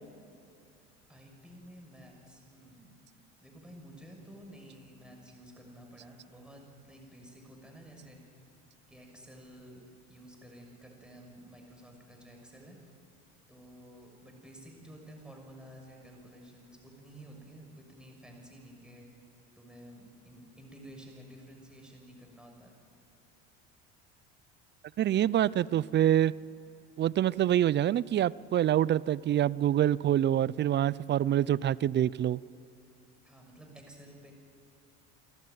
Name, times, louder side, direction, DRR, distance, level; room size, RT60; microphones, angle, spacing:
voice 1, 1.1-3.0 3.4-8.2 8.9-9.8 10.1-12.8 13.5-19.1 19.6-22.7 33.2-34.3, right 1 dB, ahead, 1 dB, 6.2 m, -52 dB
voice 2, 25.0-26.3 27.0-32.4, right 11 dB, 30° right, 22 dB, 0.4 m, -26 dB
29.5 x 12.0 x 9.5 m, 2.7 s
supercardioid pair, 90°, 35 cm